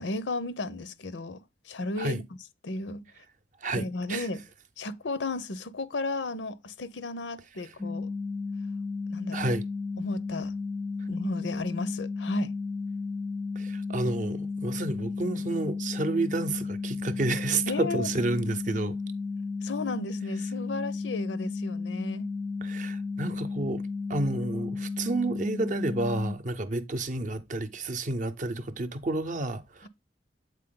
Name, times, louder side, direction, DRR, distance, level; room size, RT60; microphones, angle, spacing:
voice 1, 0.0-2.2 2.6-3.0 3.7-4.4 4.8-8.1 9.1-9.5 10.0-10.5 11.1-12.5 17.7-18.1 19.6-22.3 29.8-29.9, left 2 dB, 90° left, 0.8 m, -34 dB
voice 2, 3.6-4.3 9.3-9.6 13.6-19.0 22.6-23.8 24.1-29.9, right 2 dB, 45° right, 0.6 m, -30 dB
sound 1, 7.8-26.3, left 4 dB, 5° left, 0.5 m, -33 dB
8.2 x 4.2 x 3.7 m
head